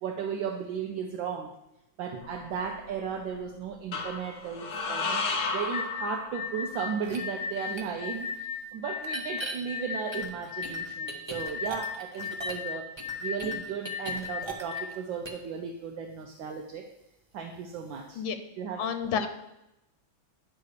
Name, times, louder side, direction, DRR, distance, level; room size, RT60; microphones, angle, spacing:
voice 1, 0.0-1.5 2.0-12.9 13.2-16.9 17.3-18.2 18.6-18.9, right 6 dB, 75° right, 2 dB, 1.4 m, -35 dB
sound 1, 2.2-3.0 3.9-6.8, left 3 dB, 50° left, 0.9 m, -33 dB
sound 2, 5.7-14.9, left 6 dB, 30° left, 1.4 m, -36 dB
sound 3, 7.0-7.2 7.8-7.9 9.0-9.5 10.1-12.7 13.0-15.0 15.2-15.5, right 2 dB, 30° right, 0.5 m, -39 dB
voice 2, 18.8-19.3, left 7 dB, 75° left, 9 dB, 1.5 m, -29 dB
9.5 x 3.8 x 6.5 m, 0.88 s
omnidirectional pair, 2.2 m